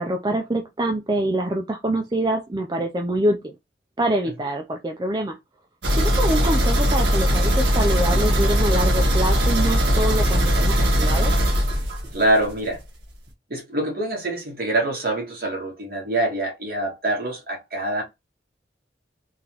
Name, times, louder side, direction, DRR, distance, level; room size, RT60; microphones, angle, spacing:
voice 1, 0.0-3.6 4.0-5.4 5.9-11.3, right 1 dB, 25° right, 0.4 m, -25 dB
sound 1, 5.8-12.5 12.8-12.9 13.3-13.4, equal, 85° right, 1.7 m, -20 dB
voice 2, 12.1-12.8 13.5-18.0, right 1 dB, 55° right, 1.9 m, -25 dB
3.8 x 3.0 x 2.9 m
head